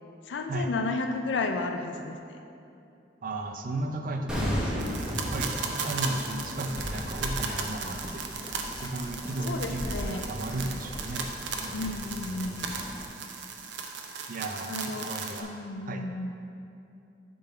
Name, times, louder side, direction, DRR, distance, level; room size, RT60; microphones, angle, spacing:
voice 1, 0.2-2.2 9.4-10.3 11.7-12.7 14.7-15.1 15.4-16.3, left 3 dB, 85° left, 5 dB, 0.4 m, -32 dB
voice 2, 3.2-5.6 5.8-8.3 8.7-11.3 11.6-11.8 14.3-15.5 15.9-16.0, right 2 dB, 50° right, 5 dB, 0.5 m, -35 dB
sound 1, 4.3-9.3 9.6-9.7, equal, 5° right, 1.0 m, -35 dB
sound 2, 4.8-15.4, right 5 dB, 90° right, 0.6 m, -36 dB
Bird vocalization bird call bird song, 6.8-13.0, equal, 25° left, 0.5 m, -40 dB
7.0 x 3.9 x 5.5 m, 2.7 s
head